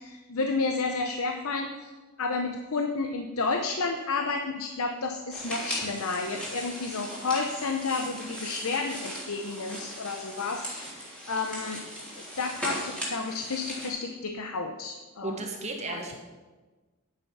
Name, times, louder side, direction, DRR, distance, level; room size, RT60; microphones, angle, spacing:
voice 1, 0.0-1.9 2.2-11.8 12.2-15.4 15.9-16.2, left 4 dB, 70° left, 5 dB, 0.8 m, -31 dB
sound 1, 5.3-13.9, equal, 5° left, 3.5 m, -38 dB
voice 2, 15.2-16.2, right 2 dB, 30° right, 1 dB, 1.4 m, -34 dB
10.5 x 9.2 x 5.6 m, 1.3 s
head